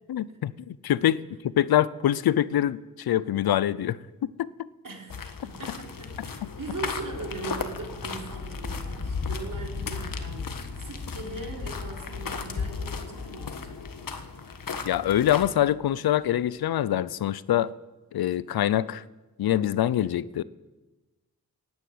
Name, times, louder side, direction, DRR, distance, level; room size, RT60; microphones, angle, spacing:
voice 1, 0.1-1.2 1.6-4.0 4.2-4.5 14.8-17.7 18.1-19.0 19.4-20.4, left 12 dB, 85° left, 0.6 m, -24 dB
voice 2, 4.8-13.8, right 3 dB, 60° right, 4.2 m, -40 dB
sound 1, 5.1-15.5, left 5 dB, 65° left, 1.5 m, -35 dB
sound 2, 6.7-16.5, left 2 dB, 20° left, 2.0 m, -44 dB
17.5 x 10.5 x 7.9 m
cardioid pair, 50°, 36 cm